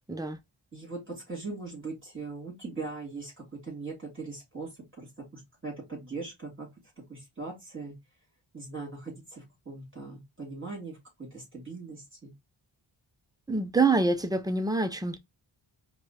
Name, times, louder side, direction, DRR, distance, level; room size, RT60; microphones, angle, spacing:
voice 1, 0.7-4.7 5.0-6.7 7.1-7.9 8.5-12.3, right 3 dB, 25° right, 2.6 m, -40 dB
voice 2, 13.5-15.2, right 3 dB, 10° right, 0.5 m, -26 dB
4.7 x 2.3 x 2.9 m
wide cardioid pair, 80°, 47 cm